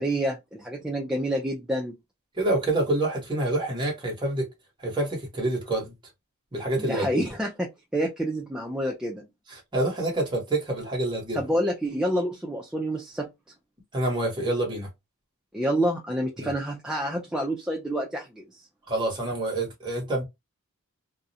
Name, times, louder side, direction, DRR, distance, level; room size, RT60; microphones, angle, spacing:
voice 1, 0.0-2.0 6.8-9.3 11.3-13.3 15.5-18.7, right 1 dB, 5° right, 0.3 m, -28 dB
voice 2, 2.4-4.5 4.8-5.9 6.5-7.2 9.5-11.4 13.9-14.9 16.4-16.5 18.9-20.2, right 2 dB, 20° right, 1.0 m, -27 dB
2.4 x 2.0 x 2.6 m
head